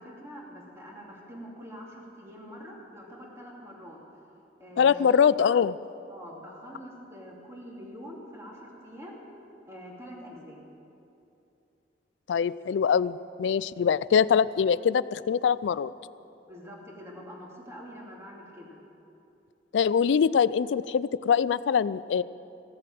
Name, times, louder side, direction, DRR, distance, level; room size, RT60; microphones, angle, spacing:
voice 1, 0.0-4.0 4.6-5.1 6.1-9.2 9.7-10.6 16.5-18.8, equal, 15° right, -3 dB, 2.6 m, -45 dB
voice 2, 4.8-5.8 12.3-15.9 19.7-22.2, left 7 dB, 90° left, 18 dB, 0.3 m, -23 dB
16.0 x 7.6 x 9.1 m, 2.8 s
head